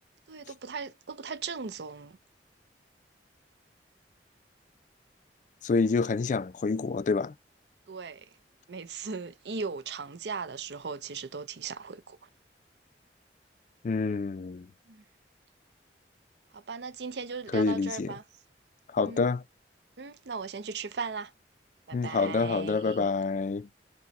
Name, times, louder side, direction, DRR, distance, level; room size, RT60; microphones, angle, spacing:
voice 1, 0.3-2.2 7.9-8.3 8.7-12.3 14.9-15.0 16.5-18.2 19.0-19.3 20.0-21.3 21.9-23.1, right 5 dB, 75° right, 0.6 m, -38 dB
voice 2, 5.6-7.3 13.8-14.7 17.5-18.1 18.9-19.4 21.9-23.7, left 4 dB, 45° left, 0.3 m, -27 dB
4.5 x 2.1 x 4.1 m
head